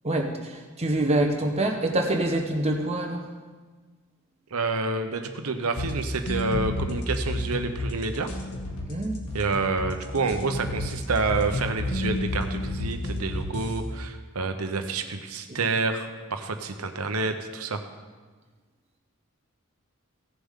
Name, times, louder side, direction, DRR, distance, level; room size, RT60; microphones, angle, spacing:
voice 1, 0.0-3.3 8.9-9.2 15.5-15.6, right 1 dB, 30° right, 2 dB, 1.2 m, -26 dB
voice 2, 4.5-8.3 9.3-17.8, right 3 dB, 80° right, 6 dB, 1.0 m, -28 dB
sound 1, 5.8-13.8, left 1 dB, 85° left, 1.8 m, -31 dB
17.0 x 7.1 x 3.8 m, 1.4 s
head